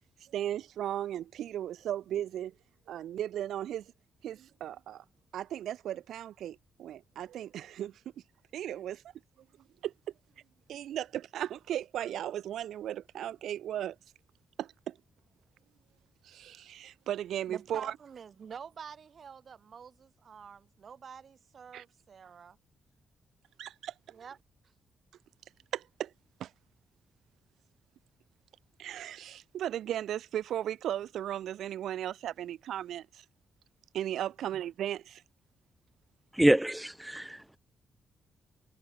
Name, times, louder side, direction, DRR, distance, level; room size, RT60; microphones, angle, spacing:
voice 1, 0.2-2.5 2.9-3.9 4.2-5.0 5.3-7.9 8.5-9.0 9.8-9.9 10.7-14.0 14.6-15.0 16.2-17.9 21.7-21.8 23.6-23.9 25.7-26.1 26.4-26.5 28.8-33.2 33.9-35.2, right 11 dB, 85° right, 4.4 m, -36 dB
voice 2, 17.5-22.6 24.1-24.4, right 7 dB, 45° right, 7.1 m, -47 dB
voice 3, 36.3-37.6, right 1 dB, 5° right, 0.5 m, -26 dB
cardioid pair, 140°, 0 cm